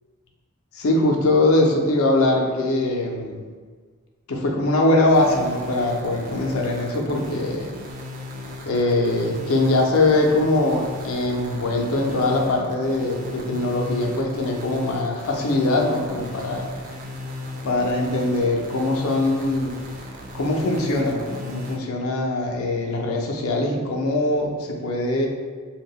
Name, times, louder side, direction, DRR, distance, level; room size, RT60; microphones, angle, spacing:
voice 1, 0.7-3.4 4.3-7.7 8.6-16.7 17.6-19.8 20.3-25.3, left 2 dB, 85° left, 0 dB, 0.4 m, -22 dB
sound 1, 5.1-21.8, left 2 dB, 40° right, 0.3 m, -36 dB
2.2 x 2.0 x 3.5 m, 1.5 s
head